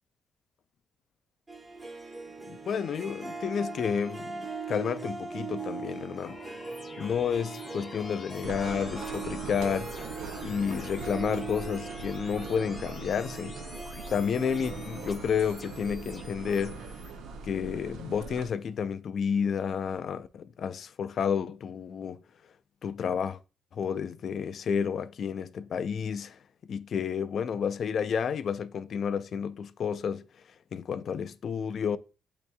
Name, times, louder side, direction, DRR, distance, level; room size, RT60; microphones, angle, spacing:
Harp, 1.5-18.3, right 4 dB, 20° right, 1.1 m, -41 dB
voice 1, 2.5-4.4 4.7-6.4 7.0-9.9 10.4-13.6 14.1-16.8 17.4-22.2 22.8-23.4 23.7-26.4 26.7-30.2 30.7-32.0, left 7 dB, 55° left, 0.3 m, -31 dB
sound 1, 6.2-17.1, left 3 dB, 35° left, 0.7 m, -47 dB
sound 2, 8.4-18.5, right 4 dB, 85° right, 0.4 m, -42 dB
8.3 x 2.8 x 2.2 m
cardioid pair, 90°, 0 cm